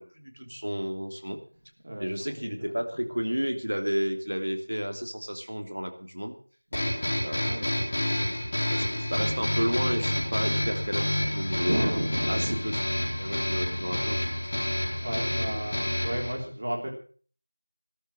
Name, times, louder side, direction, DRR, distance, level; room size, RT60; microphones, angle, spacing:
voice 1, 0.0-1.4 2.0-6.3 7.2-7.5 8.7-11.8 12.3-12.8 13.2-14.2, equal, 65° right, 5 dB, 3.0 m, -32 dB
voice 2, 1.8-2.8 6.7-6.9 7.5-8.3 11.7-12.6 13.2-13.7 14.8-16.9, right 1 dB, 25° right, 1 dB, 3.5 m, -34 dB
sound 1, 6.7-16.3, left 1 dB, 15° left, 3.4 m, -29 dB
14.0 x 13.5 x 6.2 m, 0.43 s
figure-of-eight pair, 175°, 0 cm